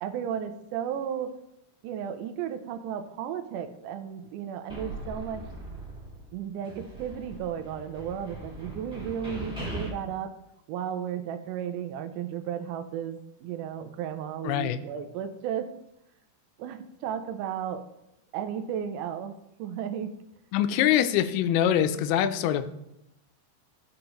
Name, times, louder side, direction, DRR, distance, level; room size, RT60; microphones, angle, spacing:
voice 1, 0.0-1.3 1.8-5.4 6.3-10.3 10.7-15.7 16.6-17.8 18.3-19.3 19.6-20.1, right 9 dB, 85° right, 6 dB, 1.8 m, -34 dB
sound 1, 4.7-6.4 6.6-9.9, right 1 dB, 5° right, 0.7 m, -40 dB
voice 2, 14.4-14.8 20.5-22.7, left 10 dB, 85° left, 11 dB, 2.5 m, -24 dB
12.5 x 5.0 x 3.0 m, 0.85 s
omnidirectional pair, 4.4 m